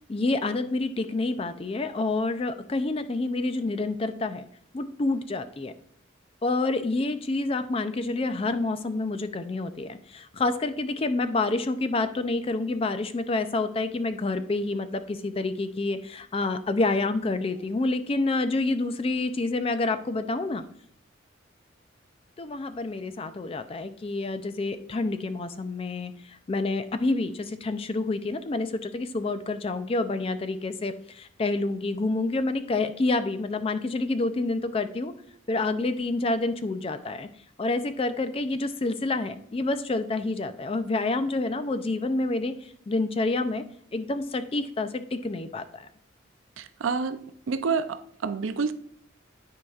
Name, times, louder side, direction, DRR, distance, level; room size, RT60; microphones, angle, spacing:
voice 1, 0.1-4.5 4.7-5.7 6.4-20.6 22.4-35.1 35.5-37.3 37.6-43.6 43.9-45.9, left 2 dB, 30° left, 11 dB, 0.4 m, -28 dB
voice 2, 46.6-47.2 47.5-48.7, right 5 dB, 85° right, 11 dB, 0.5 m, -28 dB
10.0 x 4.7 x 2.4 m, 0.65 s
head